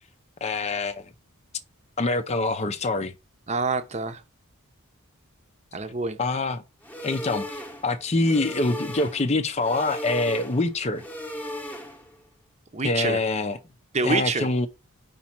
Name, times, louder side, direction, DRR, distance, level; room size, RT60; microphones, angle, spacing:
voice 1, 0.4-1.0 2.0-3.1 6.2-6.6 7.0-11.0 12.8-13.6 14.0-14.7, left 2 dB, 30° left, 0.5 m, -25 dB
voice 2, 3.5-4.2 5.7-6.2 12.7-13.2 13.9-14.5, right 3 dB, 30° right, 0.8 m, -26 dB
sound 1, 6.8-12.2, left 1 dB, 10° left, 1.0 m, -37 dB
5.3 x 4.1 x 5.9 m
head